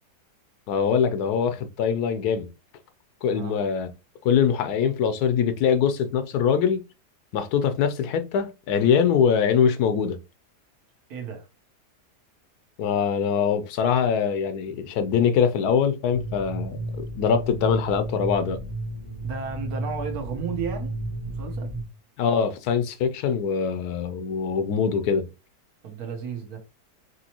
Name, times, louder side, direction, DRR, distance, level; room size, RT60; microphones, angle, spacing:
voice 1, 0.7-2.5 3.2-3.9 4.2-6.8 7.3-10.2 12.8-16.8 17.1-18.6 22.2-25.3, left 7 dB, 75° left, 1.0 m, -23 dB
voice 2, 11.1-11.5 19.2-21.0 21.3-21.9 25.8-26.6, right 6 dB, 65° right, 1.4 m, -33 dB
sound 1, 16.1-21.8, right 1 dB, 45° right, 1.6 m, -33 dB
5.2 x 3.1 x 2.9 m
omnidirectional pair, 1.7 m